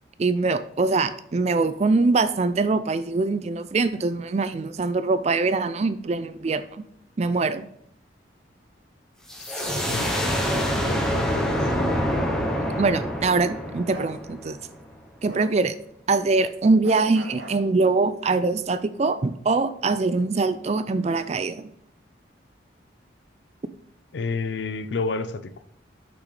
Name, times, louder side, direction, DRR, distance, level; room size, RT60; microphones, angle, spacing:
voice 1, 0.2-6.8 7.2-7.7 12.8-14.6 15.2-15.8 16.1-21.7, right 3 dB, 35° right, 0.4 m, -23 dB
sound 1, 9.3-14.8, equal, 5° left, 0.8 m, -26 dB
voice 2, 9.4-10.4 10.9-11.6 24.1-25.5, left 4 dB, 70° left, 0.5 m, -31 dB
Bark, 13.9-14.1 15.3-15.5 16.8-17.6, right 2 dB, 70° right, 1.8 m, -39 dB
6.2 x 6.1 x 3.2 m
head